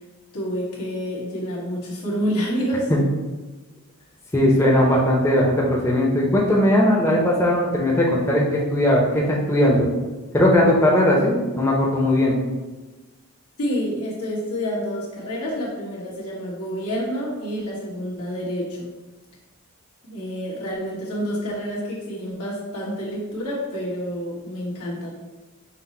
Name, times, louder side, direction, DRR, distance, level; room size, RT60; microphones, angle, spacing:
voice 1, 0.3-2.9 13.6-19.0 20.0-25.1, equal, 85° left, -5 dB, 1.4 m, -28 dB
voice 2, 4.3-9.9 10.3-12.4, left 1 dB, 10° left, -4 dB, 0.5 m, -18 dB
5.8 x 2.0 x 4.2 m, 1.2 s
head